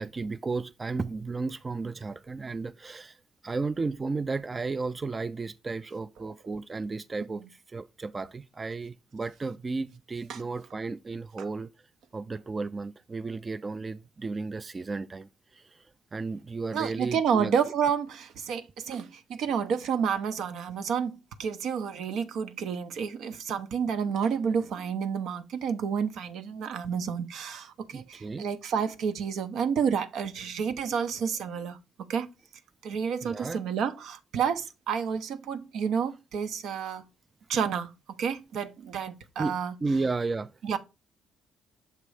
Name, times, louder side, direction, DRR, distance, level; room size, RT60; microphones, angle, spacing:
voice 1, 0.0-11.7 12.1-17.6 27.9-28.5 33.2-33.6 39.4-40.5, right 3 dB, 30° right, 0.3 m, -34 dB
voice 2, 16.7-31.8 32.1-32.3 32.8-37.0 37.5-39.7 40.6-40.8, right 7 dB, 80° right, 0.6 m, -30 dB
6.7 x 3.0 x 4.8 m
cardioid pair, 90°, 0 cm